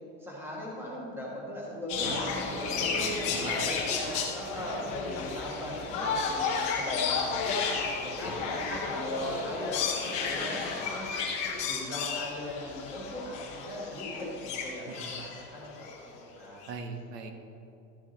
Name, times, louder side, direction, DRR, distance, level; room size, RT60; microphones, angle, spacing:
voice 1, 0.2-2.9 3.2-7.6 8.0-11.1 11.6-16.1 16.4-16.6, equal, 5° right, -5 dB, 1.3 m, -39 dB
sound 1, 1.9-16.1 16.6-16.7, left 5 dB, 15° left, 0.5 m, -32 dB
voice 2, 2.0-3.8 15.0-15.1 16.7-17.3, right 4 dB, 80° right, 5 dB, 1.3 m, -40 dB
13.0 x 7.2 x 4.0 m, 2.8 s
supercardioid pair, 175°, 47 cm